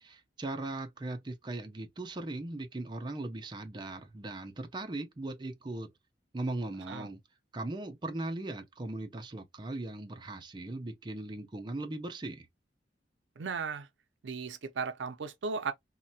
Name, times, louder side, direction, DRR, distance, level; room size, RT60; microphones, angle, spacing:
voice 1, 0.0-5.9 6.3-7.2 7.5-12.5, right 2 dB, 25° right, 0.5 m, -39 dB
voice 2, 13.4-13.9 14.2-15.7, right 5 dB, 85° right, 0.5 m, -36 dB
3.1 x 2.2 x 2.6 m
head